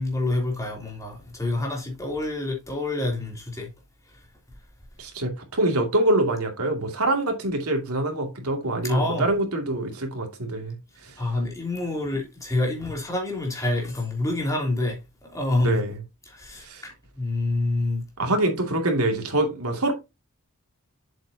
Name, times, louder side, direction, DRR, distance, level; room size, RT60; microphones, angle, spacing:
voice 1, 0.0-3.7 8.8-9.3 11.2-15.0 15.3-15.8 16.3-18.0, left 2 dB, 15° left, 3.2 m, -27 dB
voice 2, 5.0-10.7 11.0-11.1 15.6-16.0 16.6-16.8 18.2-19.9, right 1 dB, 75° right, 2.5 m, -25 dB
7.8 x 7.3 x 2.8 m
head